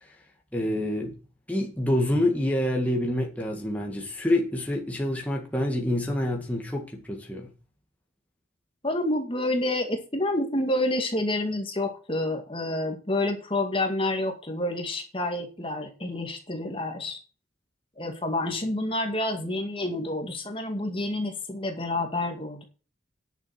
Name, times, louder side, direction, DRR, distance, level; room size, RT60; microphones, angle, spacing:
voice 1, 0.5-1.1 1.5-7.5, left 1 dB, 10° left, 2.0 m, -27 dB
voice 2, 8.8-17.2 18.0-22.6, left 1 dB, 25° left, 2.1 m, -28 dB
10.5 x 7.3 x 6.0 m
head